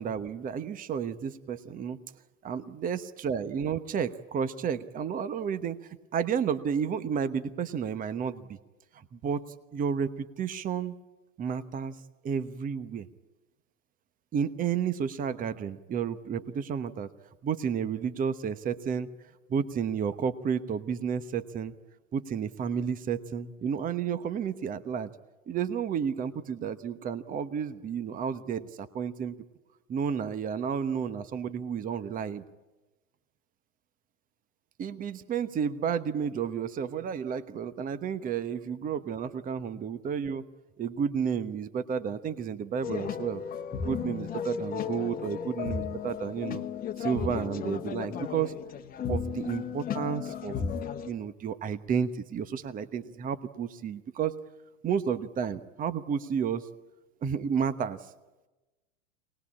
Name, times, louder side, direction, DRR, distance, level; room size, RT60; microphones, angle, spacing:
voice 1, 0.0-2.0 2.4-8.6 8.9-9.4 9.7-10.9 11.4-12.0 12.2-13.1 14.3-17.1 17.4-19.1 19.5-21.7 22.1-25.1 25.5-29.4 29.9-32.4 34.8-40.4 40.8-43.4 43.8-46.6 47.0-48.5 49.1-50.6 51.0-54.3 54.8-56.7 57.2-58.1, right 7 dB, 20° right, 12 dB, 1.1 m, -31 dB
sound 1, 42.8-51.1, left 7 dB, 25° left, 1.3 m, -34 dB
24.0 x 20.0 x 8.6 m, 1.1 s
hypercardioid pair, 115°, 38 cm